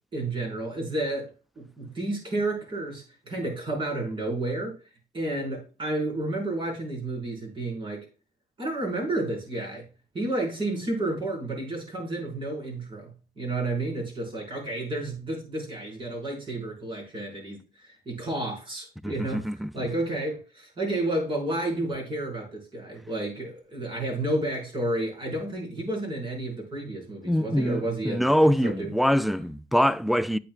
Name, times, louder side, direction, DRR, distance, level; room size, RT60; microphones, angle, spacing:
voice 1, 0.1-4.8 5.1-8.1 8.6-9.9 10.1-19.4 19.7-28.3 28.6-28.9, right 2 dB, 30° right, 5.2 m, -31 dB
voice 2, 19.0-19.7 27.2-30.4, equal, ahead, 0.3 m, -24 dB
9.1 x 8.7 x 2.5 m
cardioid pair, 110°, 17 cm